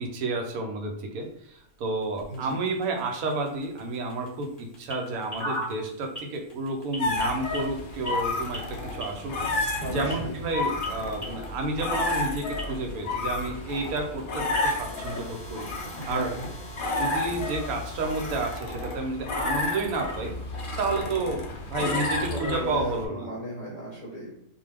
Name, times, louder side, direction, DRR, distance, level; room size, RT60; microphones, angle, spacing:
voice 1, 0.0-9.4 9.8-15.7 16.1-16.3 17.0-20.3 20.8-21.4 21.7-23.3, right 2 dB, 85° right, 3 dB, 1.1 m, -31 dB
sound 1, 1.2-18.6, equal, 20° left, 1.0 m, -43 dB
voice 2, 2.3-2.6 9.8-10.3 16.0-16.5 21.8-24.3, equal, 40° left, -4 dB, 0.7 m, -36 dB
sound 2, 7.0-23.1, left 2 dB, 85° left, 0.4 m, -31 dB
2.4 x 2.2 x 3.2 m, 0.78 s
omnidirectional pair, 1.5 m